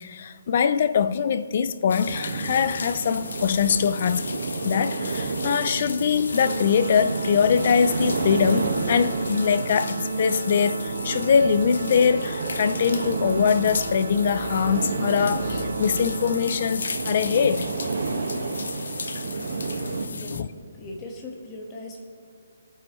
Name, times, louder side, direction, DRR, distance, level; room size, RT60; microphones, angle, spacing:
voice 1, 0.0-4.4 4.6-17.7 20.3-20.5, left 7 dB, 45° left, 0.5 m, -23 dB
sound 1, 1.9-20.4, left 5 dB, 70° left, 0.8 m, -37 dB
sound 2, 2.0-20.1, right 3 dB, 65° right, 1.5 m, -31 dB
Organ, 6.3-17.1, right 3 dB, 85° right, 0.9 m, -33 dB
voice 2, 20.1-20.5 20.7-22.0, left 1 dB, 15° left, 1.5 m, -39 dB
26.5 x 9.4 x 3.2 m
hypercardioid pair, 165°, 0 cm